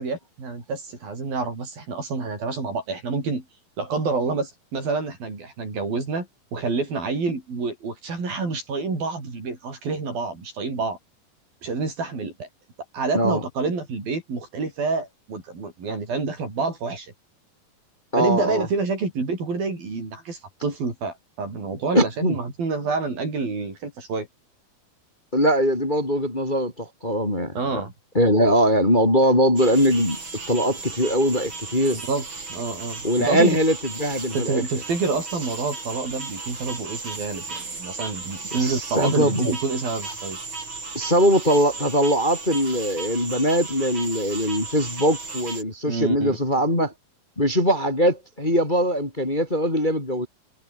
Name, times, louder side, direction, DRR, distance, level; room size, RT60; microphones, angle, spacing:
voice 1, 0.0-3.4 3.8-11.0 11.6-12.5 12.9-17.1 18.2-24.3 27.6-27.9 32.1-33.6 34.3-40.4 45.9-46.4, right 4 dB, 65° right, 9.2 m, -28 dB
voice 2, 18.1-18.7 21.9-22.4 25.3-27.8 28.1-30.2 30.5-32.0 33.0-34.6 38.6-39.5 40.9-46.9 47.4-50.3, equal, 10° left, 3.9 m, -21 dB
sound 1, 29.6-45.6, right 3 dB, 30° right, 5.2 m, -35 dB
omnidirectional pair, 4.5 m